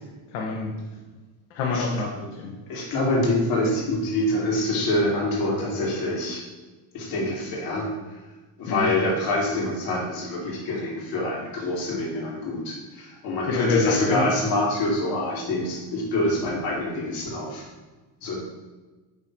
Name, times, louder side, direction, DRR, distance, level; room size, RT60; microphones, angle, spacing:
voice 1, 0.3-0.7 1.5-2.5 8.7-8.9 13.5-14.3, left 4 dB, 85° left, -1 dB, 1.3 m, -26 dB
voice 2, 2.7-6.4 6.9-7.9 8.6-17.7 18.2-18.3, left 1 dB, 50° left, -3 dB, 2.5 m, -26 dB
10.0 x 3.8 x 4.5 m, 1.2 s
cardioid pair, 175°, 45 cm